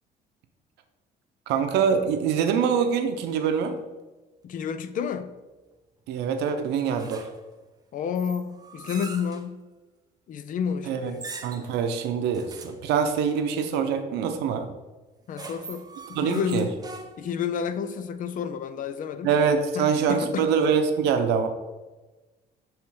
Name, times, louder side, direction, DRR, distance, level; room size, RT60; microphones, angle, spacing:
voice 1, 1.5-3.8 6.1-7.3 10.9-11.1 11.4-14.7 16.1-16.7 19.2-21.5, right 6 dB, 85° right, 7 dB, 0.7 m, -24 dB
voice 2, 4.4-5.3 7.9-9.6 10.3-11.3 15.3-16.7 17.2-19.3 19.7-20.5, left 7 dB, 50° left, 12 dB, 0.5 m, -30 dB
sound 1, 7.0-7.5 8.1-9.5 11.0-11.8 12.3-12.8 15.1-17.4, right 3 dB, 20° right, 0.6 m, -42 dB
7.1 x 3.2 x 4.7 m, 1.2 s
cardioid pair, 110°, 17 cm